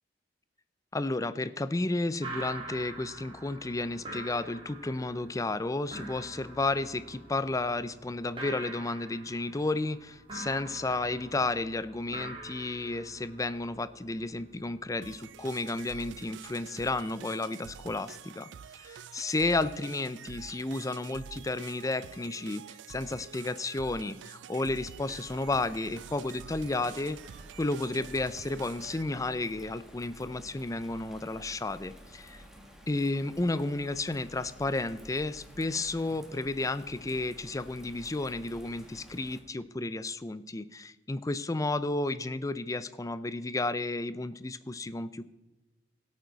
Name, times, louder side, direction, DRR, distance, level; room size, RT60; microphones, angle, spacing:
voice 1, 0.9-18.5 18.8-22.6 22.9-27.2 27.6-32.4 32.9-45.3, left 2 dB, 20° left, 15 dB, 0.5 m, -32 dB
sound 1, 2.2-16.7, right 2 dB, 30° right, 2.6 m, -46 dB
sound 2, 15.0-29.0, right 8 dB, 75° right, 0.3 m, -47 dB
Bird vocalization bird call bird song / Rain, 24.8-39.4, equal, 5° right, 1.7 m, -52 dB
16.5 x 8.7 x 4.0 m, 1.1 s
head